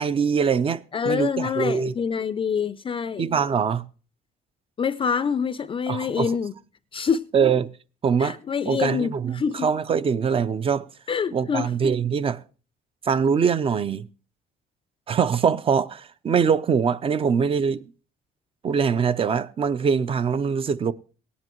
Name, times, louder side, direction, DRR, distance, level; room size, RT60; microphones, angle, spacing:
voice 1, 0.0-1.9 3.2-3.9 5.9-6.3 7.3-7.7 8.0-8.4 8.7-10.9 11.3-12.4 13.0-14.1 15.1-17.9 18.6-20.9, right 6 dB, 35° right, 0.5 m, -23 dB
voice 2, 0.9-3.3 4.8-6.5 6.9-7.3 8.2-9.7 11.1-11.7, left 6 dB, 30° left, 0.5 m, -26 dB
17.5 x 9.9 x 3.0 m
cardioid pair, 110°, 17 cm